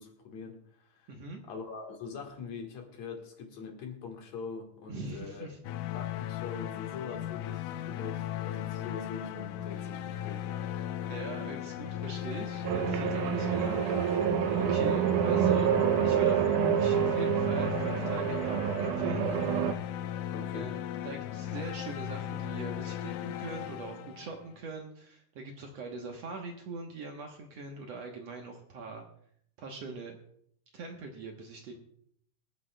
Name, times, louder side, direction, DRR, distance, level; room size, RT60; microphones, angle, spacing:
voice 1, 0.0-1.1 1.5-5.6 5.9-10.9 20.3-20.8, left 5 dB, 60° left, 2 dB, 2.6 m, -43 dB
voice 2, 1.1-1.4 4.9-5.6 11.1-14.2 14.5-15.7 16.0-19.3 20.5-29.1 29.6-30.2 30.7-31.8, right 4 dB, 60° right, 2 dB, 1.9 m, -42 dB
sound 1, 5.6-24.6, left 11 dB, 80° left, 2.1 m, -37 dB
sound 2, 12.6-19.7, right 9 dB, 80° right, 2.0 m, -27 dB
25.0 x 9.3 x 2.2 m, 0.67 s
omnidirectional pair, 3.8 m